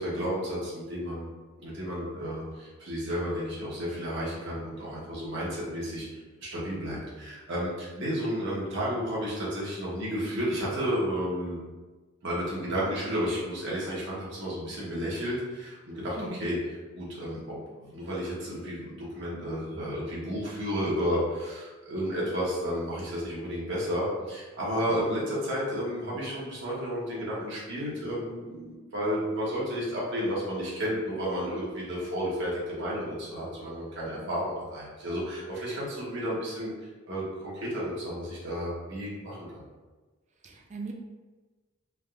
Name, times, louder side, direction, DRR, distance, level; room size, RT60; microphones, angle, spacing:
voice 1, 0.0-1.3 1.6-6.1 6.4-11.6 12.2-16.6 16.9-39.6, equal, 65° right, -6 dB, 0.9 m, -32 dB
voice 2, 40.4-40.9, right 3 dB, 35° right, 1 dB, 0.4 m, -40 dB
3.4 x 2.5 x 2.3 m, 1.3 s
head